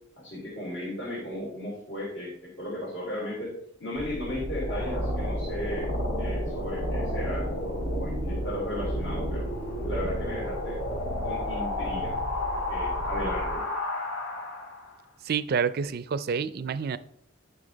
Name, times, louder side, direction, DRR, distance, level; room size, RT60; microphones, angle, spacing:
voice 1, 0.2-3.5 3.8-5.9 6.2-9.5 9.8-10.8 11.2-12.2 12.7-13.7, left 1 dB, 65° left, -7 dB, 3.0 m, -35 dB
sound 1, 3.9-14.9, equal, 80° left, 3.0 m, -31 dB
voice 2, 15.2-17.0, right 6 dB, 50° right, 15 dB, 0.4 m, -28 dB
9.8 x 5.7 x 3.9 m, 0.72 s
head